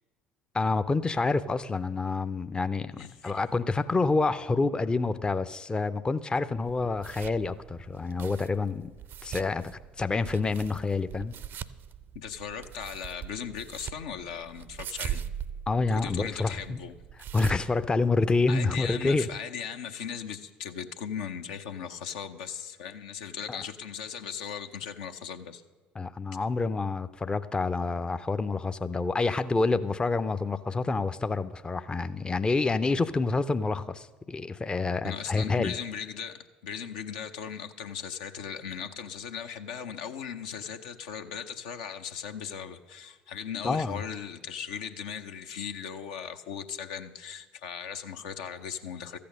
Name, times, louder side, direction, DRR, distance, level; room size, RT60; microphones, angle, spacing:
voice 1, 0.5-8.9 9.2-11.3 15.7-16.8 17.3-19.3 23.5-23.6 26.0-35.7 43.6-44.0, left 3 dB, 20° left, 12 dB, 0.5 m, -28 dB
voice 2, 3.0-3.4 12.1-15.2 15.9-17.0 18.5-25.6 35.0-49.2, left 7 dB, 70° left, 6 dB, 0.7 m, -38 dB
sound 1, 6.6-18.6, right 9 dB, 50° right, 0.5 m, -42 dB
13.5 x 8.5 x 6.5 m, 1.3 s
figure-of-eight pair, 55°, 5 cm